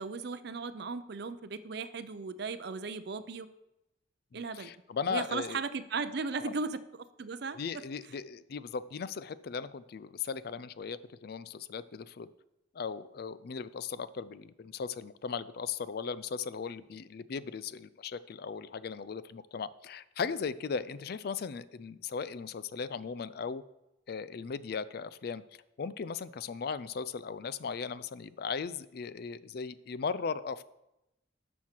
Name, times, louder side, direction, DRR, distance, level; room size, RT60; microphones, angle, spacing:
voice 1, 0.0-3.5 4.3-4.7 5.1-7.6, right 4 dB, 60° right, 13 dB, 0.5 m, -36 dB
voice 2, 4.3-5.6 6.4-6.5 7.6-12.3 12.7-23.6 24.1-25.4 25.8-30.7, left 5 dB, 55° left, 16 dB, 0.4 m, -37 dB
11.5 x 6.3 x 4.5 m, 0.91 s
head